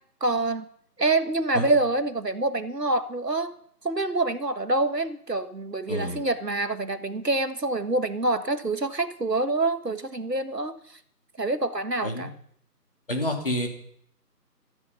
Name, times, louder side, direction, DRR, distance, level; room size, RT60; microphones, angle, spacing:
voice 1, 0.2-0.7 1.0-3.5 3.8-10.8 11.4-12.3, right 2 dB, 75° right, 10 dB, 1.7 m, -26 dB
voice 2, 5.9-6.2 12.0-12.3 13.1-13.7, left 1 dB, 35° left, 2 dB, 3.1 m, -28 dB
15.5 x 13.5 x 5.6 m, 0.67 s
figure-of-eight pair, 165°, 49 cm